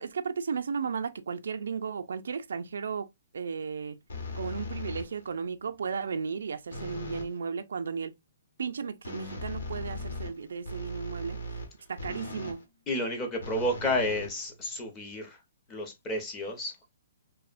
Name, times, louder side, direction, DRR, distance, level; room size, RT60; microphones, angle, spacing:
voice 1, 0.0-3.1 3.3-4.0 4.4-8.1 8.6-11.4 11.9-12.6, right 6 dB, 80° right, 0.3 m, -34 dB
sound 1, 4.1-5.3 6.7-7.4 9.0-12.6 13.4-14.9, left 1 dB, 75° left, 1.0 m, -39 dB
voice 2, 12.9-15.4 15.7-16.8, left 1 dB, 15° left, 0.6 m, -31 dB
2.8 x 2.0 x 2.4 m
hypercardioid pair, 165°, 0 cm